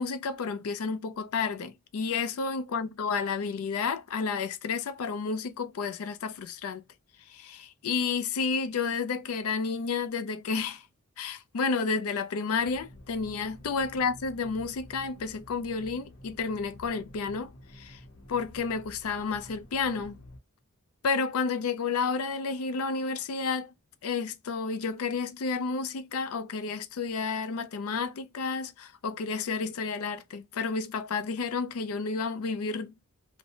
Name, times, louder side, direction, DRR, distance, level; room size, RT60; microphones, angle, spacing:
voice 1, 0.0-6.8 7.3-10.8 11.2-18.0 18.3-20.2 21.0-23.7 24.0-32.9, left 5 dB, 90° left, 0.4 m, -31 dB
sound 1, 12.6-20.4, left 1 dB, 55° left, 0.8 m, -50 dB
2.8 x 2.1 x 2.6 m
head